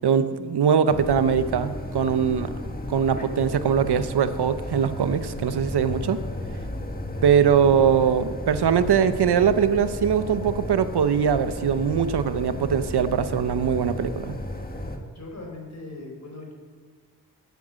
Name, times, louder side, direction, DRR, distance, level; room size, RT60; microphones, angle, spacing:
voice 1, 0.0-2.5 2.9-6.2 7.2-14.4, right 7 dB, 75° right, 12 dB, 0.9 m, -22 dB
sound 1, 0.9-15.0, left 1 dB, 20° left, 1.6 m, -34 dB
voice 2, 15.1-16.5, left 2 dB, 45° left, 0 dB, 4.1 m, -40 dB
14.5 x 9.2 x 7.6 m, 1.5 s
wide cardioid pair, 120°, 40 cm